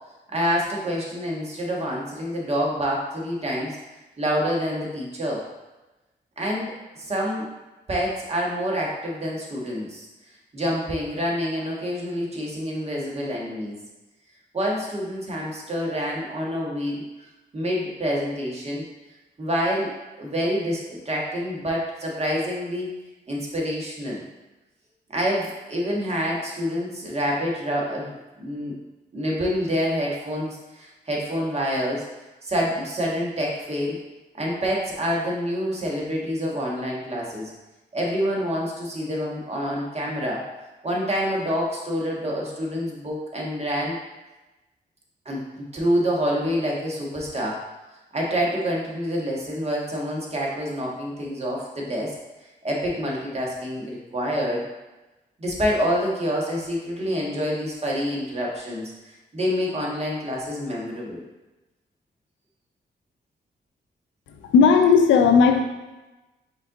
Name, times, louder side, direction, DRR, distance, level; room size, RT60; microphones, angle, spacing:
voice 1, 0.3-3.8 4.2-5.4 6.4-6.7 7.0-7.5 7.9-10.1 10.5-13.7 14.5-17.0 17.5-18.9 19.4-22.9 23.3-24.2 25.1-28.1 28.4-28.7 29.1-32.1 32.4-34.0 34.4-37.5 37.9-40.4 40.8-44.0 45.2-47.6 48.1-52.1 52.6-54.7 55.4-58.9 59.3-61.2, equal, 35° right, -3 dB, 1.4 m, -27 dB
voice 2, 64.3-65.6, left 5 dB, 85° left, 5 dB, 0.5 m, -16 dB
5.3 x 2.6 x 3.8 m, 1.1 s
cardioid pair, 65°, 19 cm